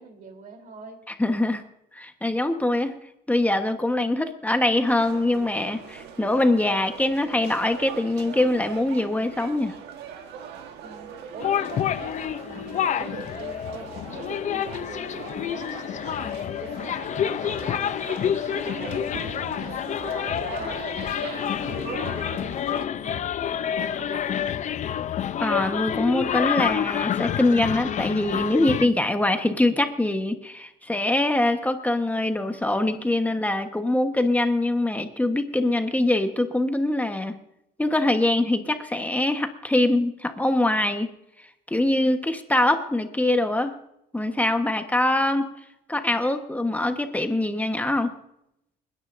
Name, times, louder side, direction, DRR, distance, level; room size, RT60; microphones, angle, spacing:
voice 1, 0.0-1.2 10.8-12.2 12.4-15.8 16.2-18.1 18.6-23.4 23.7-24.4, right 3 dB, 50° right, 5 dB, 3.6 m, -43 dB
voice 2, 1.2-1.6 1.9-2.9 3.3-9.7 25.4-37.4 37.8-41.1 41.7-43.7 44.1-45.5 45.9-48.1, left 1 dB, 10° left, 6 dB, 1.2 m, -23 dB
sound 1, 4.8-22.9, right 7 dB, 85° right, 1.5 m, -41 dB
sound 2, 11.4-28.9, left 9 dB, 45° left, 0.6 m, -28 dB
29.0 x 10.0 x 2.6 m, 0.81 s
cardioid pair, 110°, 17 cm